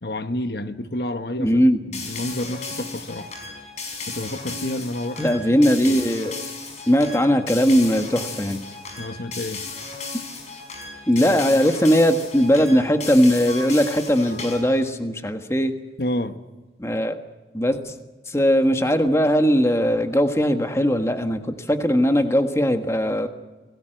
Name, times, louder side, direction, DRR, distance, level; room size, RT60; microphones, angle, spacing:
voice 1, 0.0-3.3 4.1-5.4 5.7-6.0 9.0-9.6 16.0-16.4, left 1 dB, 60° left, 9 dB, 1.2 m, -29 dB
voice 2, 1.4-1.8 5.2-6.3 6.9-8.6 11.1-15.7 16.8-17.2 17.5-17.9 18.3-23.3, equal, 15° left, 7 dB, 1.5 m, -19 dB
sound 1, 1.9-14.8, left 4 dB, 40° left, 5.2 m, -35 dB
26.5 x 18.5 x 7.8 m, 1.2 s
head